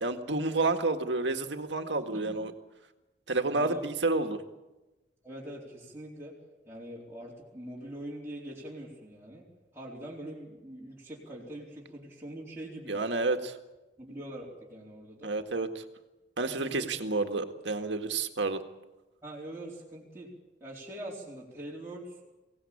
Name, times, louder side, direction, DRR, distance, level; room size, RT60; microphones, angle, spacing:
voice 1, 0.0-2.5 3.3-4.4 12.9-13.6 15.2-15.8 16.4-18.6, right 3 dB, 80° right, 6 dB, 1.9 m, -30 dB
voice 2, 3.5-3.9 5.2-6.4 6.7-9.5 9.7-13.0 14.0-15.3 16.7-16.9 19.2-20.3 20.6-22.2, right 1 dB, 15° right, -5 dB, 4.1 m, -43 dB
23.5 x 17.5 x 8.6 m, 1.1 s
head